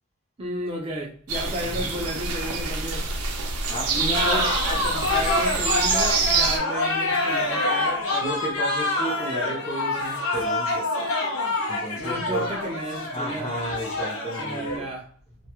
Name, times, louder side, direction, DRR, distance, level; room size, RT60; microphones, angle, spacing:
voice 1, 0.4-3.1 3.9-8.4 10.0-10.1 12.0-13.6 14.4-15.1, right 1 dB, 25° right, 0.4 m, -33 dB
sound 1, 1.3-6.6, right 4 dB, 85° right, 0.5 m, -26 dB
voice 2, 3.7-4.5 8.2-10.9 11.1-11.3 11.7-12.5 13.1-14.9, right 1 dB, 30° left, 0.6 m, -33 dB
sound 2, 4.1-14.8, left 2 dB, 75° left, 0.7 m, -26 dB
2.2 x 2.0 x 2.9 m
head